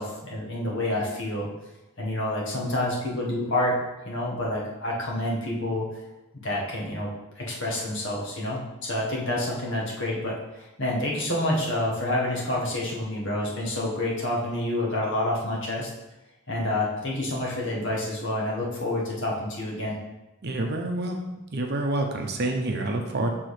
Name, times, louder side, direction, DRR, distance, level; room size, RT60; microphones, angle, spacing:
voice 1, 0.0-1.5 2.0-3.8 4.0-5.9 6.3-7.1 7.3-15.9 16.5-19.9, left 1 dB, 55° left, -3 dB, 1.6 m, -28 dB
voice 2, 20.4-21.2 21.5-23.3, right 2 dB, 50° right, 3 dB, 0.7 m, -27 dB
6.1 x 3.8 x 4.9 m, 0.99 s
head